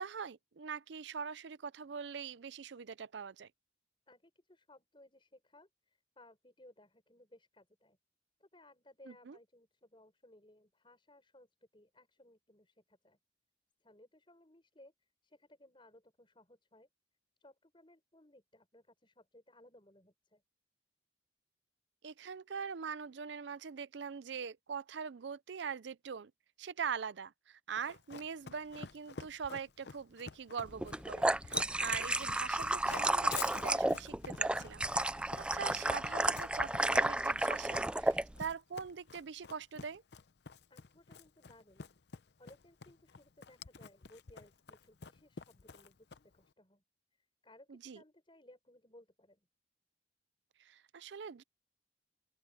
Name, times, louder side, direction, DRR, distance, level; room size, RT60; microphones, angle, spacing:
voice 1, 0.0-3.5 9.1-9.4 22.0-26.3 26.6-40.0 47.7-48.0 50.6-51.4, right 6 dB, 70° right, 0.5 m, -43 dB
voice 2, 4.1-8.0 8.4-13.2 13.8-16.9 17.4-20.4 40.7-41.9 42.4-46.8 47.1-49.5, left 1 dB, 25° left, 5.6 m, -62 dB
Run, 27.8-46.4, left 5 dB, 65° left, 0.7 m, -49 dB
sound 1, 30.8-38.2, right 1 dB, 5° right, 0.3 m, -32 dB
open air
head